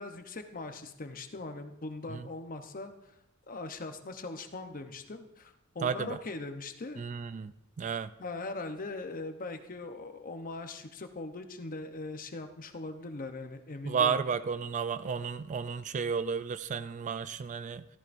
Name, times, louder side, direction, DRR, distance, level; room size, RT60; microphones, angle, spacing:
voice 1, 0.0-2.9 3.5-7.0 8.2-14.2, left 3 dB, 40° left, 7 dB, 0.8 m, -40 dB
voice 2, 5.8-6.2 7.0-7.5 7.8-8.1 13.8-17.9, right 6 dB, 35° right, 13 dB, 0.3 m, -32 dB
13.5 x 13.5 x 2.6 m, 0.84 s
head